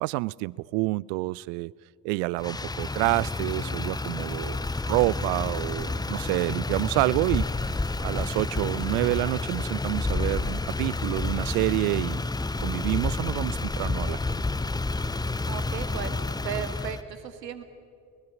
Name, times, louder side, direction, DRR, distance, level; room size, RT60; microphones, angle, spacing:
voice 1, 0.0-1.7 2.0-7.7 8.0-12.2 12.6-14.4, right 22 dB, 55° right, 25 dB, 0.5 m, -28 dB
Motor vehicle (road), 2.4-17.0, left 3 dB, 10° left, 0.7 m, -30 dB
voice 2, 15.5-17.6, right 8 dB, 80° right, 10 dB, 1.4 m, -36 dB
24.5 x 20.0 x 6.2 m, 2.3 s
figure-of-eight pair, 45°, 49 cm